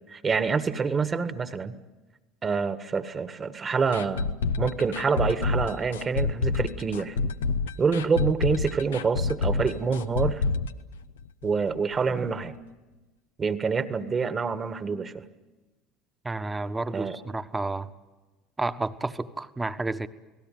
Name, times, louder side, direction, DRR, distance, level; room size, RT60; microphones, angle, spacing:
voice 1, 0.1-1.7 2.4-7.2 7.8-10.4 11.4-12.5 13.4-15.2 16.9-17.2, right 5 dB, 30° right, 12 dB, 1.6 m, -27 dB
sound 1, 3.9-11.7 11.9-12.0 12.4-12.5, left 4 dB, 80° left, 0.8 m, -28 dB
voice 2, 16.2-17.9 18.6-20.1, right 2 dB, 15° right, 10 dB, 1.3 m, -31 dB
30.0 x 18.5 x 9.4 m, 1.2 s
hypercardioid pair, 70°, 0 cm